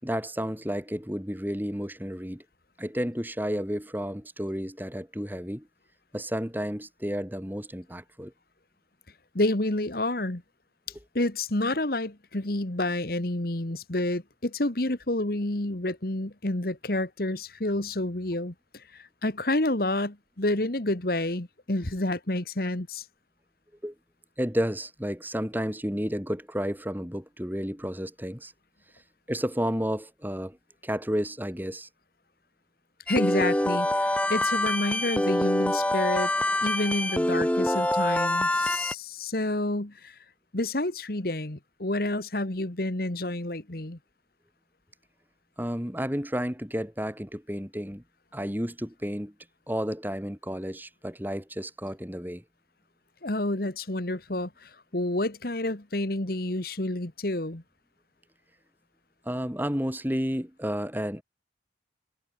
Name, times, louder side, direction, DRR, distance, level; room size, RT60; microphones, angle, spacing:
voice 1, 0.0-2.4 2.8-5.7 6.1-8.3 23.8-23.9 24.4-28.5 29.3-30.6 30.8-31.9 45.6-48.0 48.3-49.3 49.7-52.4 59.2-61.2, equal, 10° right, 5.1 m, -31 dB
voice 2, 9.3-10.4 11.1-23.0 33.1-36.3 36.6-40.2 40.5-44.0 53.2-57.6, left 1 dB, 50° left, 1.8 m, -29 dB
sound 1, 33.1-38.9, left 1 dB, 5° left, 0.8 m, -25 dB
head